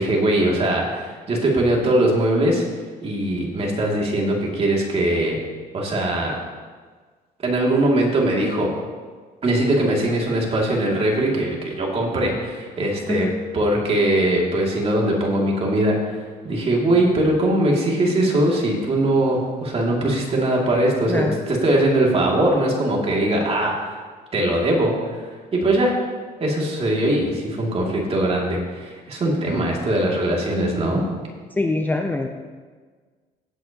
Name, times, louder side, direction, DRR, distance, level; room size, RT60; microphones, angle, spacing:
voice 1, 0.0-2.6 3.0-5.4 5.7-6.4 7.4-8.7 9.4-13.3 13.5-16.0 16.4-23.7 24.3-25.2 25.5-26.0 26.4-31.0, right 1 dB, 35° right, -2 dB, 2.5 m, -21 dB
voice 2, 13.1-13.4 21.1-21.4 31.6-32.3, left 2 dB, 10° left, 3 dB, 0.6 m, -23 dB
16.0 x 8.0 x 2.9 m, 1.5 s
cardioid pair, 110°, 17 cm